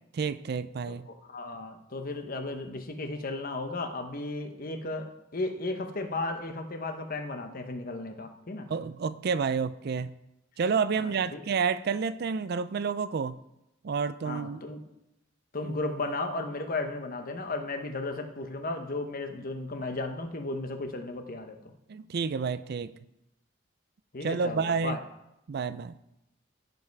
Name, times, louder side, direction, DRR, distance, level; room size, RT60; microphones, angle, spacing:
voice 1, 0.1-1.1 8.7-10.2 10.6-13.4 13.8-14.6 15.6-15.7 21.9-22.9 24.2-25.0 25.5-25.9, right 5 dB, 55° right, 0.4 m, -29 dB
voice 2, 0.9-8.7 11.0-11.4 14.2-14.8 15.5-21.6 24.1-25.0, left 2 dB, 50° left, 1.1 m, -35 dB
15.5 x 5.3 x 4.7 m
head